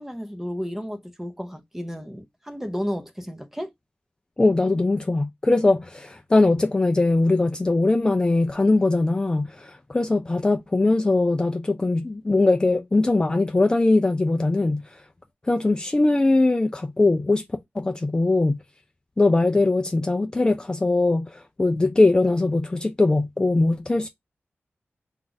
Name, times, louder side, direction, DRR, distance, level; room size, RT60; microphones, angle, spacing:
voice 1, 0.0-3.7, equal, 10° right, 0.7 m, -32 dB
voice 2, 4.4-15.0 15.4-17.4 17.7-18.6 19.2-24.1, left 2 dB, 20° left, 0.4 m, -21 dB
4.4 x 2.5 x 3.9 m
wide cardioid pair, 140°, 4 cm